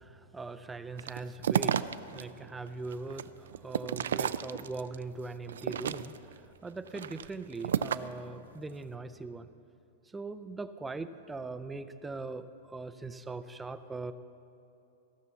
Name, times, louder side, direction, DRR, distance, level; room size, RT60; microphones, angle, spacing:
voice 1, 0.0-9.5 10.1-14.1, right 3 dB, 5° right, 12 dB, 0.3 m, -41 dB
sound 1, 1.0-2.2 2.7-5.0 5.5-6.3 6.9-8.2, right 8 dB, 85° right, 0.4 m, -32 dB
15.0 x 6.0 x 7.0 m, 2.8 s
supercardioid pair, 165°, 0 cm